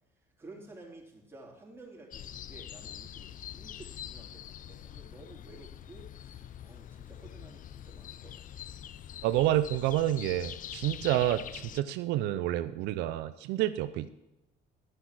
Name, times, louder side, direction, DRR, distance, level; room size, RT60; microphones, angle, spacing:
voice 1, 0.4-8.7, right 2 dB, 15° right, -2 dB, 3.6 m, -52 dB
sound 1, 2.1-11.8, left 10 dB, 50° left, 0.6 m, -44 dB
voice 2, 9.2-14.1, right 14 dB, 90° right, 12 dB, 0.6 m, -29 dB
12.5 x 6.0 x 7.6 m, 0.93 s
cardioid pair, 110°, 17 cm